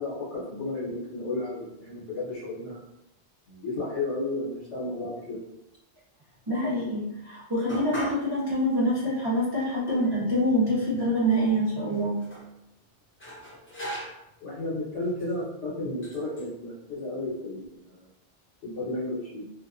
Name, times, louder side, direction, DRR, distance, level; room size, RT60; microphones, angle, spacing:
voice 1, 0.0-2.8 3.5-5.4 14.4-18.1 18.6-19.4, left 2 dB, 75° left, -10 dB, 1.2 m, -33 dB
voice 2, 6.5-12.2, equal, 35° right, -9 dB, 0.4 m, -26 dB
sound 1, 7.7-8.3 8.7-8.8 9.6-9.7 10.0-10.9 11.8-12.5 13.2-14.3 15.1-15.3 16.0-16.5, equal, 15° left, 0.5 m, -38 dB
2.6 x 2.2 x 2.4 m, 0.86 s
omnidirectional pair, 1.2 m